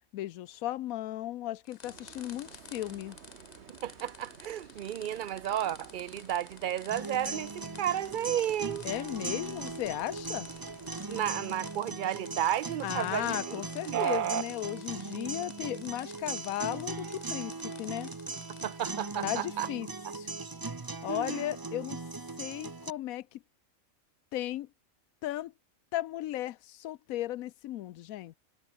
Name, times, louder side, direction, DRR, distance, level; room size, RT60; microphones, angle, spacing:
voice 1, 0.1-3.2 8.8-10.5 12.8-18.1 19.2-19.9 20.1-20.3 21.0-22.0 22.4-23.4 24.3-24.7 25.2-25.5 25.9-28.4, left 14 dB, 80° left, 1.0 m, -36 dB
sound 1, 1.6-19.4, left 5 dB, 35° left, 1.1 m, -53 dB
sound 2, 1.8-11.4, right 7 dB, 55° right, 1.3 m, -54 dB
voice 2, 3.7-8.9 11.1-14.4 18.6-19.7 20.0-20.1 21.1-21.4, right 11 dB, 70° right, 0.4 m, -32 dB
sound 3, 6.9-22.9, right 3 dB, 20° right, 0.7 m, -39 dB
omnidirectional pair, 1.5 m